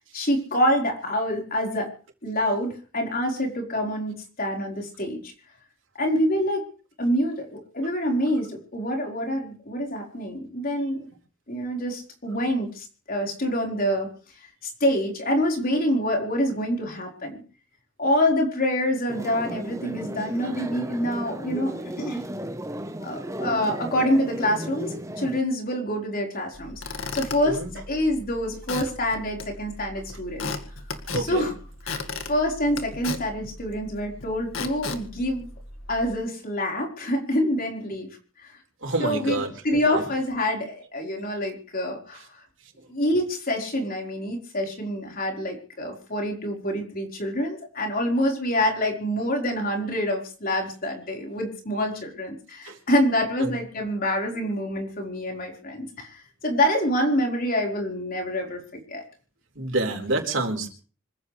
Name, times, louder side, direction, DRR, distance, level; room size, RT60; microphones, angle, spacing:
voice 1, 0.1-1.9 2.2-5.3 5.9-6.7 7.0-11.1 11.5-14.1 14.8-17.4 18.0-22.2 23.0-30.5 31.1-31.5 31.8-35.5 35.9-38.1 38.4-38.5 39.0-42.4 42.9-59.0, equal, 45° left, 1 dB, 4.7 m, -26 dB
sound 1, 19.1-25.4, right 1 dB, 15° right, 1.1 m, -35 dB
Squeak / Wood, 26.5-36.1, left 3 dB, 85° left, 2.0 m, -36 dB
voice 2, 31.1-31.5 38.8-40.1 42.8-42.9 52.6-52.8 53.4-53.5 59.6-60.7, right 2 dB, 65° right, 2 dB, 4.2 m, -28 dB
26.0 x 15.0 x 3.4 m, 0.39 s
head